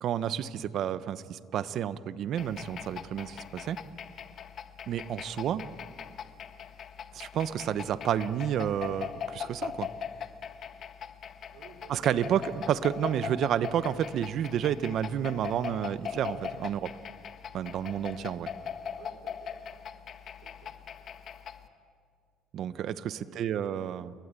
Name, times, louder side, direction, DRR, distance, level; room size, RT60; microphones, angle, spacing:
voice 1, 0.0-3.8 4.9-5.6 7.1-9.9 11.9-16.9 17.5-18.5 22.5-24.1, right 9 dB, 55° right, 14 dB, 1.0 m, -30 dB
sound 1, 2.4-21.7, left 7 dB, 45° left, 1.6 m, -41 dB
voice 2, 11.5-12.1 18.9-19.5 20.4-20.7 23.2-23.8, right 5 dB, 75° right, 2 dB, 5.0 m, -53 dB
29.5 x 22.0 x 8.4 m, 2.1 s
cardioid pair, 125°, 0 cm